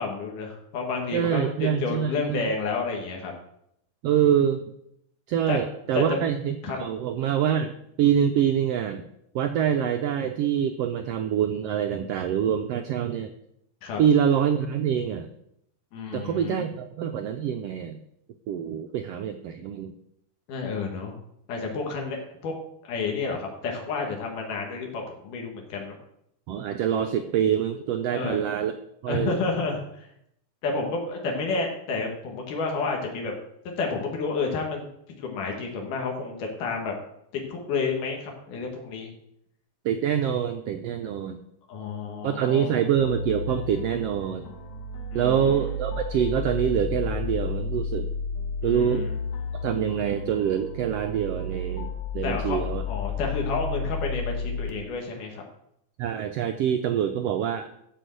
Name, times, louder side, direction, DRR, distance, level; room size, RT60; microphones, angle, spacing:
voice 1, 0.0-3.3 5.5-5.6 5.9-6.0 6.6-6.8 13.8-14.0 15.9-16.7 20.5-21.2 21.5-22.2 22.4-22.5 22.8-26.0 28.1-28.4 29.1-30.1 30.6-33.3 33.8-34.9 35.2-36.9 37.3-39.1 41.7-42.8 45.1-45.7 48.6-49.2 52.2-55.3, left 4 dB, 85° left, 1 dB, 3.2 m, -30 dB
voice 2, 1.1-2.4 4.0-4.6 5.3-9.0 9.3-13.3 14.0-15.3 16.1-18.0 18.5-19.9 26.5-28.7 29.0-29.4 39.8-41.4 42.2-44.5 45.1-48.1 48.6-49.1 49.6-51.9 52.1-52.8 56.0-57.7, right 9 dB, 90° right, 7 dB, 1.4 m, -25 dB
sound 1, 43.0-54.7, left 4 dB, 65° left, 2.3 m, -32 dB
13.5 x 4.6 x 7.7 m, 0.76 s
omnidirectional pair, 3.6 m